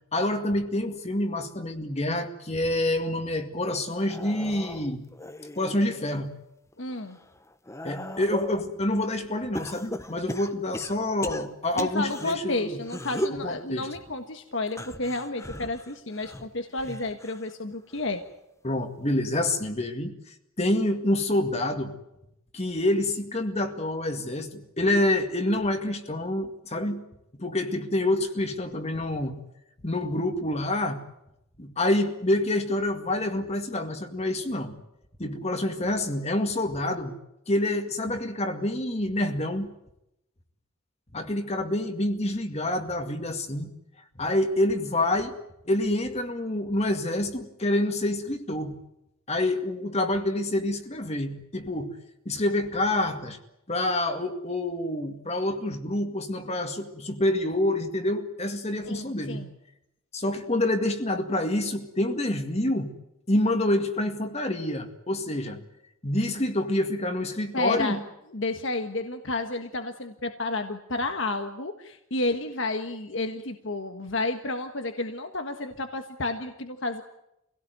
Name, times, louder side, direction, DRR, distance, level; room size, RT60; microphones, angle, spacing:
voice 1, 0.1-5.0 5.5-6.3 7.8-12.8 13.3-13.9 18.6-20.1 20.6-21.9 22.5-27.0 27.4-29.3 29.8-31.0 31.6-34.8 35.2-37.1 37.5-39.7 41.1-43.7 44.2-45.3 45.6-48.7 49.3-51.9 52.3-53.4 53.7-59.4 60.1-62.9 63.3-65.6 66.0-68.0, left 1 dB, 30° left, 6 dB, 2.1 m, -27 dB
sound 1, 3.9-6.2 6.7-8.7 9.5-12.3 12.8-13.5 14.7-17.5 17.9-18.3 19.5-19.6, left 1 dB, 15° left, 1.1 m, -37 dB
voice 2, 6.8-7.2 11.7-18.2 58.9-59.5 67.5-68.0 68.3-77.0, left 2 dB, 60° left, 6 dB, 1.5 m, -31 dB
26.5 x 17.5 x 9.4 m, 0.85 s
head